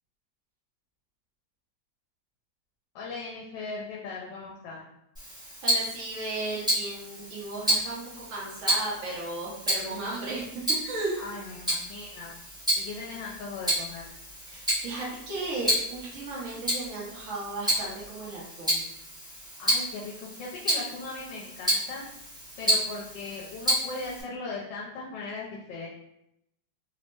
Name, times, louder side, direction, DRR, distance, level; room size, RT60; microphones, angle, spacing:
voice 1, 2.9-4.9 11.2-12.3 12.7-14.1 19.6-22.0 22.6-25.9, left 3 dB, 75° left, -3 dB, 1.2 m, -38 dB
Tick-tock, 5.1-24.2, right 1 dB, 5° right, 0.4 m, -31 dB
voice 2, 5.6-10.5 10.8-11.2 14.5-18.8, right 2 dB, 55° right, -5 dB, 0.9 m, -35 dB
3.3 x 2.0 x 3.0 m, 0.80 s
omnidirectional pair, 2.1 m